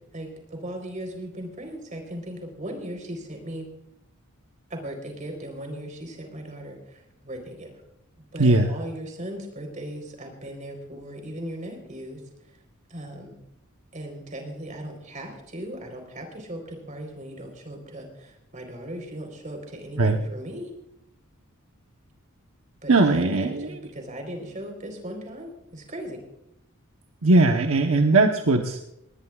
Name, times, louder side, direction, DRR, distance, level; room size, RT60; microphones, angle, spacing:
voice 1, 0.1-3.7 4.7-7.7 8.3-12.2 12.9-13.4 13.9-20.7 22.8-26.2, right 1 dB, 35° right, 3 dB, 4.1 m, -38 dB
voice 2, 8.4-8.7 20.0-20.2 22.9-23.8 27.2-28.8, right 2 dB, 75° right, 3 dB, 1.1 m, -19 dB
20.0 x 19.5 x 2.4 m, 0.81 s
head